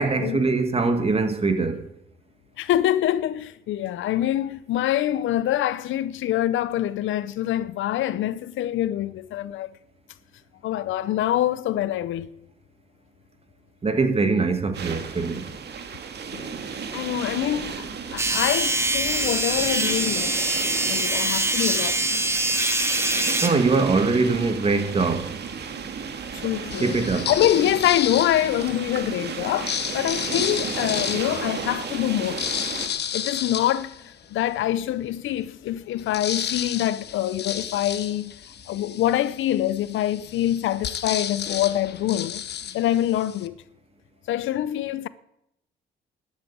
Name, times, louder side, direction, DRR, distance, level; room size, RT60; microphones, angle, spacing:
voice 1, 0.0-1.8 13.8-15.4 23.4-25.3 26.8-27.3, right 4 dB, 30° right, 1.9 m, -22 dB
voice 2, 2.6-9.7 10.6-12.3 16.3-16.4 16.7-17.9 18.1-20.3 20.9-22.0 26.3-27.0 27.3-32.5 33.1-38.3 38.7-42.4 42.7-43.6 44.3-45.1, left 12 dB, 80° left, 0.7 m, -25 dB
sound 1, 14.7-32.9, right 6 dB, 55° right, 2.1 m, -34 dB
sound 2, 18.2-23.5, right 2 dB, 15° right, 1.9 m, -24 dB
sound 3, 26.7-28.9 29.4-34.6 35.1-35.2 35.5-43.5, left 9 dB, 55° left, 1.0 m, -32 dB
11.5 x 9.8 x 8.6 m
cardioid pair, 90°, 20 cm